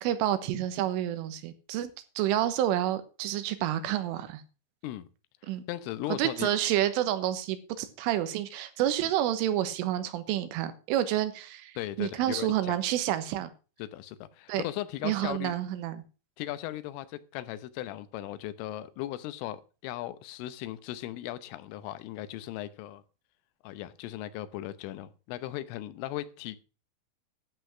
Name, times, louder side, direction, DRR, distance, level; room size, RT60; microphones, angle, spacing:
voice 1, 0.0-1.9 2.2-4.4 5.5-5.6 6.2-13.5 14.5-14.6 15.0-16.0, right 12 dB, 85° right, 3.7 m, -29 dB
voice 2, 5.4-6.5 11.8-12.8 13.8-15.5 16.4-23.0 23.6-26.6, left 14 dB, 85° left, 3.4 m, -37 dB
12.0 x 8.1 x 6.1 m
omnidirectional pair, 5.6 m